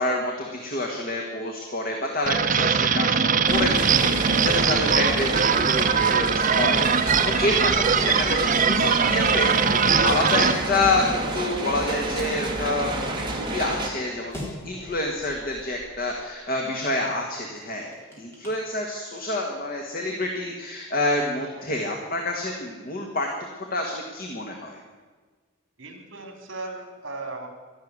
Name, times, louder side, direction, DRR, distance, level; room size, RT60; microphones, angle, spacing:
voice 1, 0.0-23.3 23.6-24.8, left 2 dB, 50° left, 1 dB, 1.8 m, -28 dB
sound 1, 2.3-10.5, right 6 dB, 45° right, 0.8 m, -21 dB
sound 2, 3.2-19.3, equal, 15° left, 4.1 m, -45 dB
sound 3, 3.5-13.9, right 2 dB, 25° right, 2.2 m, -29 dB
voice 2, 25.8-27.5, right 3 dB, 70° right, 4 dB, 3.4 m, -37 dB
13.0 x 11.5 x 9.6 m, 1.4 s
head